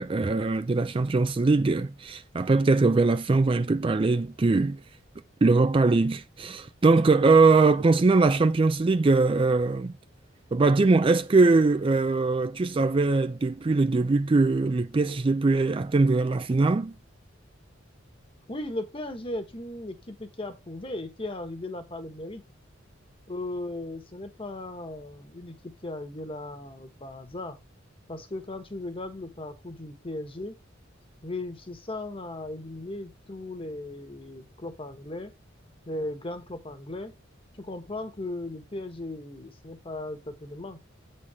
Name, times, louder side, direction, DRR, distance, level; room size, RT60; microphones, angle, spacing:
voice 1, 0.0-4.8 5.4-9.9 10.5-16.9, right 3 dB, 25° right, 0.4 m, -22 dB
voice 2, 18.5-22.4 23.3-27.6 28.1-30.6 31.2-35.3 35.9-37.1 37.6-40.8, left 2 dB, 30° left, 1.4 m, -37 dB
8.6 x 4.4 x 4.9 m
head